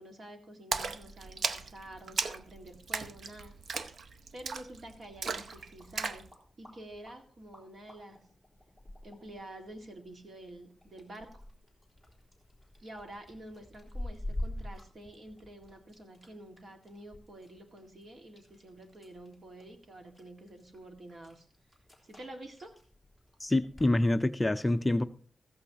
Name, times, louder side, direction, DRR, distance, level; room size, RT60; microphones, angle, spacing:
voice 1, 0.0-3.6 4.3-6.2 6.6-8.2 9.0-11.4 12.8-21.5 22.0-22.8, right 1 dB, 50° right, 1.8 m, -49 dB
Splash splatter, 0.7-6.3, right 5 dB, 65° right, 0.7 m, -36 dB
sound 1, 4.8-23.9, left 1 dB, 15° right, 3.6 m, -47 dB
voice 2, 23.4-25.0, left 1 dB, 15° left, 0.4 m, -26 dB
14.5 x 14.5 x 2.9 m
wide cardioid pair, 135°, 0 cm